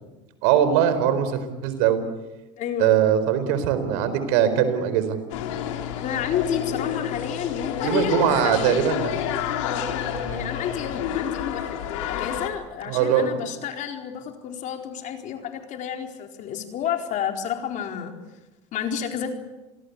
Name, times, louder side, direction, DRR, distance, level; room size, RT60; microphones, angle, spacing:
voice 1, 0.4-2.0 2.8-5.2 7.8-9.2 10.2-10.4 12.9-13.3, right 9 dB, 75° right, 11 dB, 4.3 m, -21 dB
voice 2, 2.6-3.0 6.0-8.5 10.3-18.1 18.7-19.4, left 8 dB, 55° left, 4 dB, 4.4 m, -31 dB
sound 1, 5.3-12.5, left 9 dB, 85° left, 3.2 m, -29 dB
28.0 x 20.5 x 8.3 m, 1.1 s
supercardioid pair, 105°, 16 cm